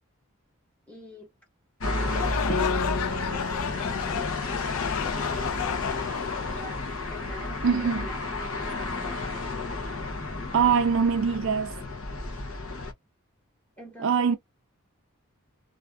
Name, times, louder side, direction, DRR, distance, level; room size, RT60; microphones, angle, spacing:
voice 1, 0.9-1.3 2.2-6.9 7.1-9.5 13.8-14.4, right 1 dB, 5° left, 1.0 m, -46 dB
sound 1, 1.8-12.9, left 2 dB, 65° left, 0.7 m, -32 dB
sound 2, 2.0-7.2, left 9 dB, 85° left, 0.3 m, -33 dB
sound 3, 2.5-6.0, left 3 dB, 35° left, 0.8 m, -35 dB
voice 2, 7.6-8.0 10.5-11.8 14.0-14.4, right 6 dB, 60° right, 0.4 m, -23 dB
2.4 x 2.4 x 2.2 m
head